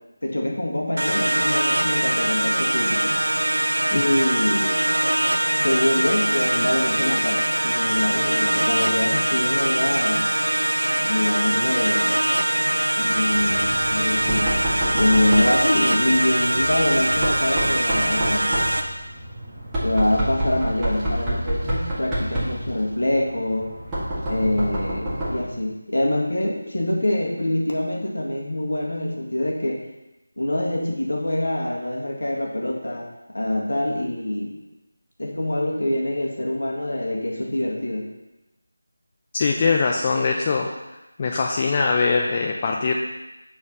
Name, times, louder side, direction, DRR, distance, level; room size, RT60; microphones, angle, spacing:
voice 1, 0.2-3.2 3.9-4.7 5.6-10.3 11.0-12.1 13.0-14.6 14.9-18.6 19.8-23.7 24.2-29.9 30.4-34.5 35.2-38.1, left 1 dB, 70° left, -1 dB, 1.9 m, -25 dB
sound 1, 1.0-18.8, right 1 dB, 70° right, 1.0 m, -22 dB
Knock, 13.3-25.5, right 1 dB, 10° right, 1.6 m, -29 dB
voice 2, 39.3-40.7 41.2-42.9, left 4 dB, 25° left, 1 dB, 0.5 m, -22 dB
7.1 x 4.4 x 5.5 m, 0.99 s
figure-of-eight pair, 165°, 0 cm